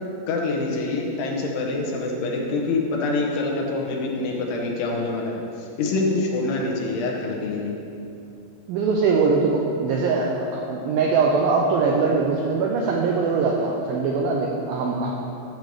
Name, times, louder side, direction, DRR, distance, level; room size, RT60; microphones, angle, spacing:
voice 1, 0.3-7.7, left 3 dB, 75° left, -1 dB, 2.9 m, -25 dB
voice 2, 8.7-15.1, right 4 dB, 90° right, -1 dB, 2.0 m, -22 dB
11.5 x 6.7 x 3.2 m, 2.6 s
omnidirectional pair, 4.9 m